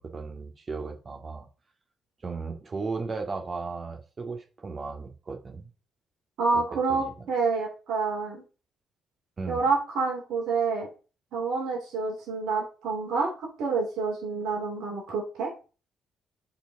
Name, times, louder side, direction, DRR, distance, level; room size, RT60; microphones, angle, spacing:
voice 1, 0.0-1.5 2.2-5.7 6.7-7.3 9.4-9.7, right 4 dB, 40° right, 2.0 m, -36 dB
voice 2, 6.4-8.4 9.5-10.9 11.3-15.5, right 4 dB, 65° right, 2.5 m, -28 dB
6.8 x 4.7 x 5.9 m
hypercardioid pair, 45°, 0 cm